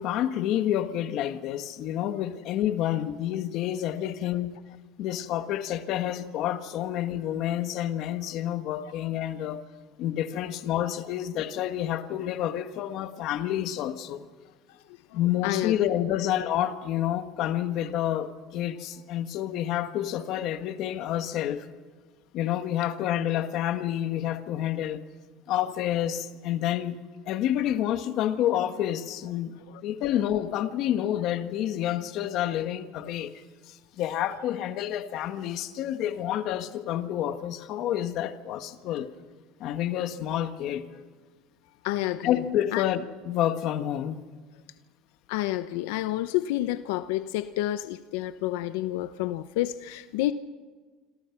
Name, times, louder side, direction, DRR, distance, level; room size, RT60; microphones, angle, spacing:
voice 1, 0.0-4.6 5.0-9.6 10.0-14.3 15.1-21.7 22.3-25.0 25.5-39.1 39.6-41.0 42.2-44.2, left 11 dB, 50° left, 1.5 m, -29 dB
voice 2, 15.4-15.7 41.8-42.4 42.7-42.8 45.3-50.3, left 15 dB, 85° left, 0.8 m, -29 dB
27.0 x 26.5 x 6.0 m
cardioid pair, 165°, 0 cm